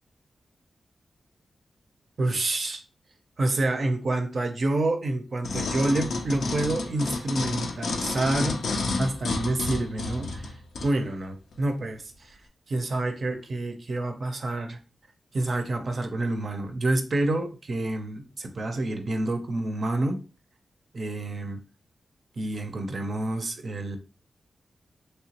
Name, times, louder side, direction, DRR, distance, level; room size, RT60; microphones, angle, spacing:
voice 1, 2.2-2.8 3.4-8.6 9.0-10.6 10.8-12.4 12.7-14.8 15.3-20.2 20.9-21.6 22.4-24.0, right 2 dB, 50° right, 0.5 m, -28 dB
sound 1, 5.4-10.9 11.5-11.6, left 3 dB, 90° left, 0.5 m, -30 dB
3.2 x 2.9 x 2.8 m
wide cardioid pair, 125°, 0 cm